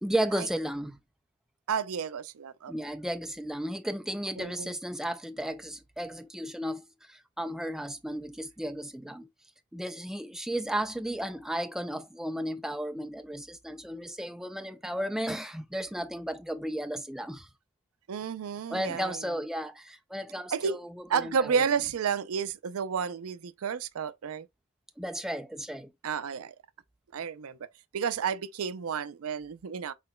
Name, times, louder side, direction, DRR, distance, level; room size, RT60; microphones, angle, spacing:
voice 1, 0.0-1.0 2.7-9.3 9.7-17.5 18.7-21.5 25.0-25.9, right 1 dB, ahead, 0.3 m, -34 dB
voice 2, 1.7-2.7 4.4-4.7 18.1-19.4 20.5-20.8 21.1-24.5 26.0-26.5 27.1-27.6 27.9-29.9, right 6 dB, 85° right, 0.4 m, -31 dB
5.8 x 3.8 x 2.2 m
head